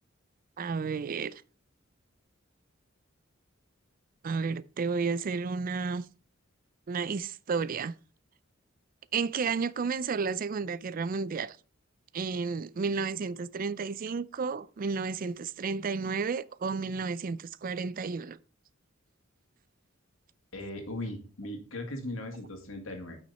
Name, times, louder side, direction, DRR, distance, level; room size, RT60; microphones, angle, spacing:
voice 1, 0.6-1.3 4.2-6.0 6.9-7.9 9.1-11.6 12.1-18.4, right 5 dB, 45° right, 0.4 m, -32 dB
voice 2, 20.5-23.2, left 1 dB, 80° left, 2.3 m, -38 dB
8.7 x 6.2 x 4.1 m
head